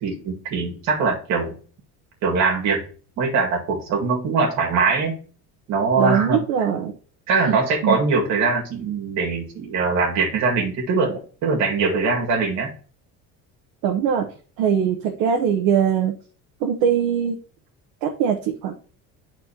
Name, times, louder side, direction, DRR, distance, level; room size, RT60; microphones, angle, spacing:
voice 1, 0.0-1.6 2.2-2.8 3.2-5.1 5.7-6.4 7.3-12.7, right 4 dB, 55° right, 0 dB, 2.0 m, -22 dB
voice 2, 6.0-6.9 7.4-7.6 7.8-8.0 13.8-14.3 14.6-16.1 16.6-17.4 18.0-18.7, right 8 dB, 85° right, 1 dB, 1.0 m, -21 dB
10.5 x 4.2 x 2.9 m, 0.39 s
cardioid pair, 175°, 35 cm